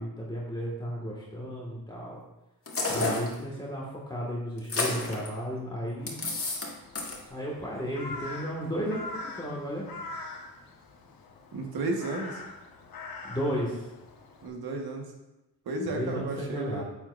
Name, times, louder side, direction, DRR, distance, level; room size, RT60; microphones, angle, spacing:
voice 1, 0.0-2.2 2.9-6.2 7.3-9.9 13.2-13.8 15.9-16.8, equal, 10° left, -5 dB, 1.8 m, -33 dB
sound 1, 2.7-3.3 4.6-5.3 6.1-6.7 6.9-7.2, left 3 dB, 35° left, 1.9 m, -30 dB
Crow, 6.0-14.5, left 2 dB, 75° left, 1.4 m, -43 dB
voice 2, 11.5-12.4 14.4-15.1 15.6-16.8, right 2 dB, 75° right, 2 dB, 1.6 m, -33 dB
8.9 x 7.6 x 2.6 m, 0.99 s
cardioid pair, 85°, 37 cm